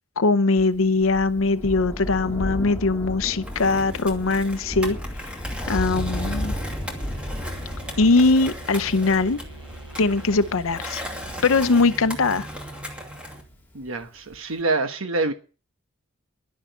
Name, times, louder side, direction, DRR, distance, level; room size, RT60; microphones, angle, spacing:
voice 1, 0.2-5.0 5.2-5.3 5.7-6.5 8.0-9.4 10.0-11.0 11.4-12.5, left 3 dB, 75° left, 0.7 m, -21 dB
Thunder, 0.6-13.4 14.3-14.4, left 1 dB, 10° left, 2.7 m, -34 dB
Skateboard, 3.4-13.4, left 1 dB, 5° right, 2.6 m, -38 dB
sound 1, 6.0-13.7, right 2 dB, 25° right, 6.2 m, -42 dB
voice 2, 13.7-15.3, right 3 dB, 75° right, 1.2 m, -26 dB
11.5 x 10.5 x 6.8 m
head